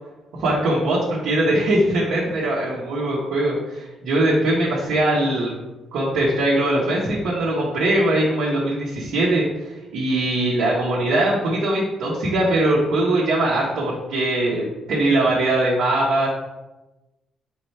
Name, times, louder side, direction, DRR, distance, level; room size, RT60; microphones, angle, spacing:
voice 1, 0.3-5.5 5.9-16.3, right 1 dB, 80° right, -5 dB, 1.0 m, -21 dB
4.2 x 3.7 x 3.2 m, 1.0 s
cardioid pair, 90°, 0 cm